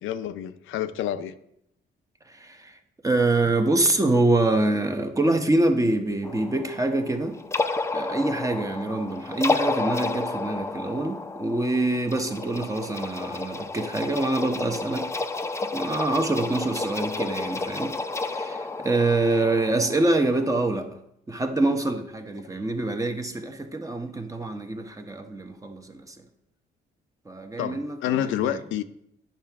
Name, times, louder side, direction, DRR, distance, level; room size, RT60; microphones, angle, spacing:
voice 1, 0.0-1.3 27.6-28.8, left 11 dB, 80° left, 11 dB, 0.5 m, -28 dB
voice 2, 2.3-2.8 3.0-7.4 7.9-15.1 15.7-20.9 21.3-26.2 27.3-28.6, right 2 dB, 15° right, 6 dB, 0.9 m, -25 dB
sound 1, 6.2-20.7, left 3 dB, 15° left, 0.5 m, -31 dB
8.8 x 5.7 x 3.5 m, 0.76 s
cardioid pair, 90°, 20 cm